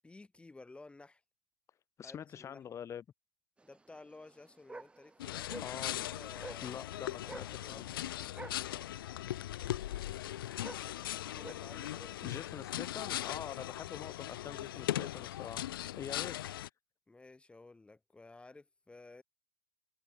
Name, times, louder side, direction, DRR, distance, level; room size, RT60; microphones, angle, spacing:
voice 1, 0.0-1.2 2.0-2.6 3.6-8.3 11.1-12.7 17.1-19.2, left 3 dB, 10° left, 1.4 m, -55 dB
voice 2, 2.0-3.0 5.6-6.1 6.6-7.9 12.2-15.6 16.0-16.4, left 8 dB, 25° left, 0.7 m, -45 dB
sound 1, 3.6-11.5, right 3 dB, 10° right, 1.0 m, -51 dB
sound 2, 5.2-16.7, left 13 dB, 70° left, 0.5 m, -39 dB
hypercardioid pair, 95°, 12 cm